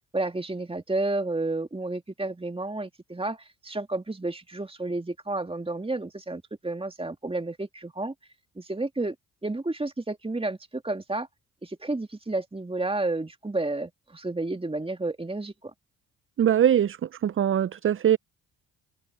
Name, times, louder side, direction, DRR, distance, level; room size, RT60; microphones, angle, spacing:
voice 1, 0.1-3.4 3.6-8.1 8.6-9.1 9.4-11.3 11.6-15.7, right 2 dB, 15° right, 2.3 m, -31 dB
voice 2, 16.4-17.0 17.2-18.2, right 10 dB, 30° right, 0.6 m, -21 dB
open air
hypercardioid pair, 50°, 41 cm